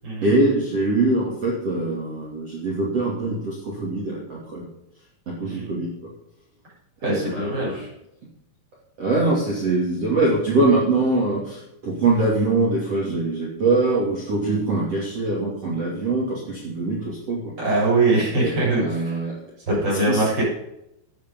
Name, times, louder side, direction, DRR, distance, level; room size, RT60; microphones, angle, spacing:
voice 1, 0.2-4.7 5.3-5.9 7.0-7.8 9.0-17.5 18.4-19.4 20.1-20.4, right 2 dB, 40° right, -4 dB, 3.1 m, -23 dB
voice 2, 5.4-5.8 7.0-7.9 17.6-19.3 19.7-20.4, right 2 dB, 25° right, -5 dB, 6.7 m, -23 dB
13.0 x 9.0 x 5.4 m, 0.83 s
omnidirectional pair, 5.3 m